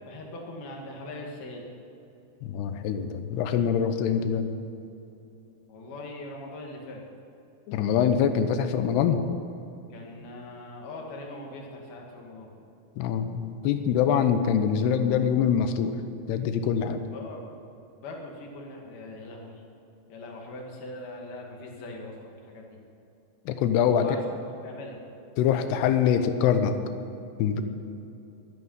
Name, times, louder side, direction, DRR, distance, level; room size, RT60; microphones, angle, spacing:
voice 1, 0.0-1.7 5.7-7.0 9.9-12.5 17.1-17.5 18.0-19.6 20.1-22.8 23.8-24.2 24.6-25.0, left 2 dB, 60° left, 0 dB, 3.7 m, -41 dB
voice 2, 2.4-4.6 7.7-9.2 13.0-16.0 16.3-17.0 23.5-24.1 25.4-26.8 27.4-27.6, left 8 dB, 75° left, 9 dB, 2.8 m, -24 dB
22.0 x 9.3 x 5.6 m, 2.8 s
omnidirectional pair, 5.2 m